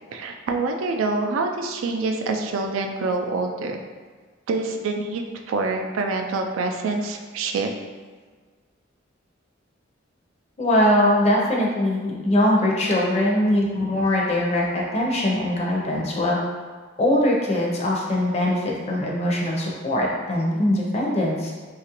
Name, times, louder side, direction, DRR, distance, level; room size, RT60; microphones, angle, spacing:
voice 1, 0.1-3.8 4.5-7.7, right 3 dB, 80° right, 3 dB, 0.3 m, -26 dB
voice 2, 10.6-16.4 17.0-21.5, left 1 dB, 30° left, -3 dB, 0.5 m, -22 dB
2.9 x 2.4 x 2.9 m, 1.5 s
head